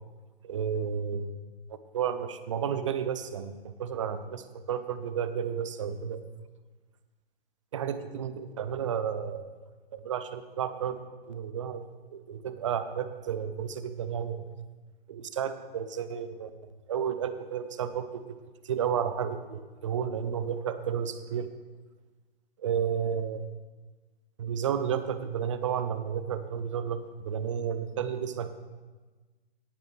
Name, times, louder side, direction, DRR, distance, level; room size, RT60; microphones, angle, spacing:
voice 1, 0.4-1.3 1.7-6.3 7.7-9.5 9.9-11.0 11.3-11.8 12.1-14.5 15.1-18.2 18.6-21.5 22.6-23.4 24.4-28.5, right 8 dB, 30° right, 12 dB, 0.7 m, -32 dB
18.0 x 10.5 x 3.4 m, 1.3 s
figure-of-eight pair, 130°, 30 cm